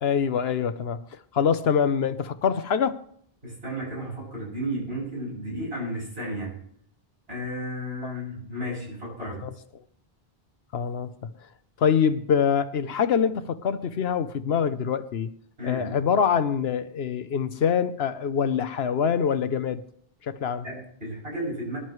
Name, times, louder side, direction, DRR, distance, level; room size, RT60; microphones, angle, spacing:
voice 1, 0.0-1.1 1.3-3.0 8.0-8.1 9.4-9.5 10.7-11.1 11.8-15.3 15.6-19.8 20.2-20.6, left 7 dB, 80° left, 1.1 m, -24 dB
voice 2, 3.4-6.5 7.3-9.4 15.6-16.0 20.6-21.8, equal, 80° right, 8.3 m, -33 dB
24.0 x 11.5 x 3.2 m
omnidirectional pair, 1.0 m